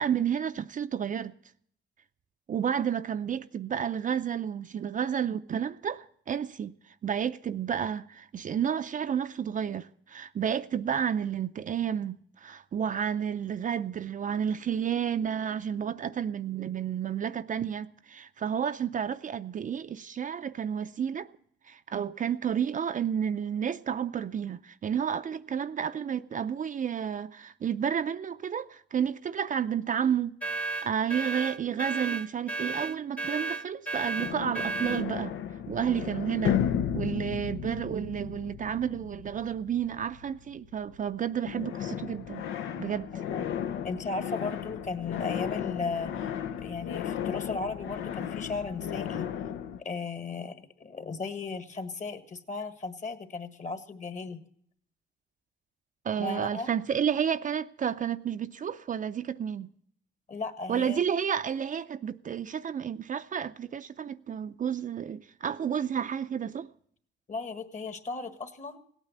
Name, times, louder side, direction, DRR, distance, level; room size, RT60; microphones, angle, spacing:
voice 1, 0.0-1.3 2.5-21.3 21.7-30.4 30.8-35.3 35.7-36.6 36.9-42.4 42.8-43.2 56.0-59.7 60.7-66.7, right 8 dB, 40° right, 0.5 m, -31 dB
sound 1, 30.4-35.1, right 3 dB, 5° left, 0.7 m, -33 dB
sound 2, 34.2-41.1 41.5-49.8, left 9 dB, 90° left, 0.8 m, -34 dB
voice 2, 43.1-43.5 43.8-46.3 46.6-49.3 49.8-54.4 56.2-56.7 60.3-61.0 67.3-68.8, left 4 dB, 35° left, 1.6 m, -36 dB
17.0 x 9.0 x 7.9 m
cardioid pair, 90°, 20 cm